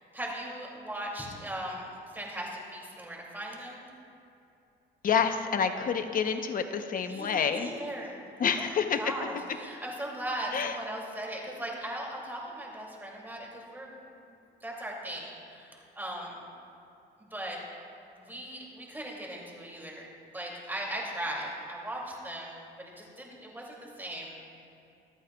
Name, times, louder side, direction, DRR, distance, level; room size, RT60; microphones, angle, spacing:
voice 1, 0.0-1.9 2.1-3.9 7.1-8.2 8.5-13.9 14.2-16.4 17.2-17.6 18.1-24.4, right 1 dB, 10° right, -3 dB, 2.5 m, -38 dB
voice 2, 5.0-7.7 8.4-9.0 10.5-10.7, left 7 dB, 45° left, 7 dB, 0.8 m, -28 dB
26.0 x 8.9 x 2.3 m, 2.7 s
cardioid pair, 115°, 20 cm